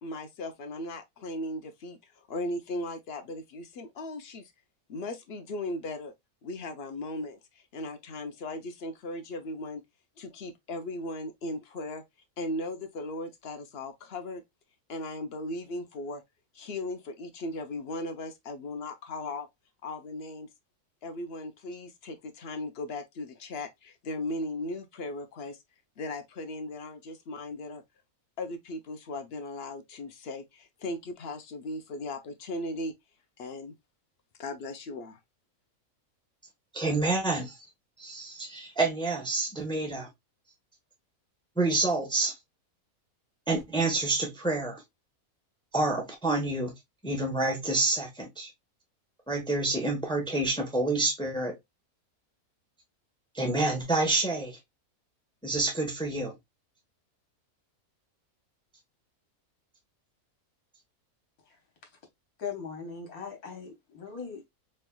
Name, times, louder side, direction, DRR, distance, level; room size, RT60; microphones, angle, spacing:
voice 1, 0.0-4.5 4.9-6.1 6.4-9.8 10.2-12.0 12.4-14.4 14.9-16.2 16.5-19.5 19.8-20.5 21.0-25.6 26.0-27.8 28.4-32.9 33.4-33.8 34.4-35.2, left 2 dB, 55° left, 0.8 m, -37 dB
voice 2, 36.7-37.6 38.0-40.1 41.6-42.3 43.5-44.8 45.7-46.7 47.0-48.5 49.3-51.5 53.3-54.6 55.4-56.3, right 2 dB, 5° left, 0.9 m, -28 dB
voice 3, 62.4-64.5, left 6 dB, 75° left, 1.6 m, -39 dB
4.4 x 3.1 x 2.2 m
omnidirectional pair, 1.5 m